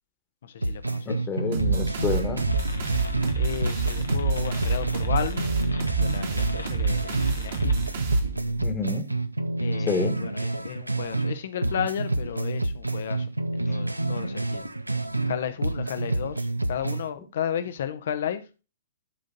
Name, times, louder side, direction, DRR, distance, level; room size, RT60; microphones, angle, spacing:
voice 1, 0.4-1.3 3.4-5.4 5.9-7.8 9.6-13.3 13.5-14.7 15.2-18.4, left 9 dB, 55° left, 0.9 m, -33 dB
sound 1, 0.6-3.4 3.6-7.4 7.6-11.4 11.6-15.4 15.6-17.1, right 2 dB, 85° right, 0.5 m, -28 dB
voice 2, 1.1-2.4 8.6-9.1 9.9-10.1, left 4 dB, 20° left, 1.4 m, -29 dB
sound 2, 1.5-8.7, right 5 dB, 50° right, 1.9 m, -28 dB
sound 3, 2.5-8.0, left 3 dB, 75° left, 1.3 m, -39 dB
11.0 x 3.9 x 3.8 m
figure-of-eight pair, 115°, 0 cm